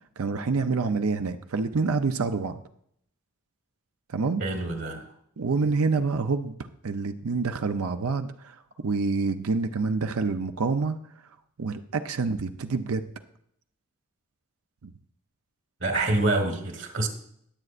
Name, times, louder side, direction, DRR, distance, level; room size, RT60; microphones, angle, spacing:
voice 1, 0.2-2.6 4.1-4.4 5.4-6.5 6.8-11.0 11.6-13.1 14.8-14.9, right 4 dB, 80° right, 8 dB, 0.6 m, -27 dB
voice 2, 4.4-5.1 15.8-17.1, right 2 dB, 55° right, 4 dB, 1.5 m, -26 dB
20.5 x 7.8 x 2.5 m, 0.70 s
head